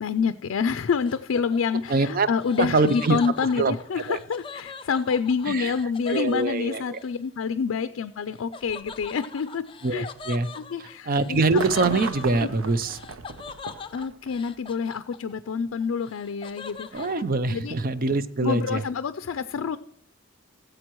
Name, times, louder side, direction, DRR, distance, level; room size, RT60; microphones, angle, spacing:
voice 1, 0.0-9.6 9.9-10.1 10.5-11.4 11.9-12.0 12.4-12.5 13.9-17.1 17.5-17.7 18.4-19.8, left 6 dB, 90° left, 11 dB, 0.4 m, -27 dB
Laughter, 1.0-7.1 8.5-15.5 15.8-17.2, left 4 dB, 25° left, 0.5 m, -41 dB
voice 2, 1.9-2.3 2.6-3.2 3.6-3.8 4.1-4.2 5.5-5.7 6.1-7.0 9.8-10.5 11.1-13.0 16.9-18.8, right 3 dB, 45° right, 13 dB, 0.5 m, -24 dB
sound 1, 11.5-14.6 15.7-15.8, right 4 dB, 85° right, 0.7 m, -37 dB
16.0 x 7.8 x 3.0 m, 0.67 s
head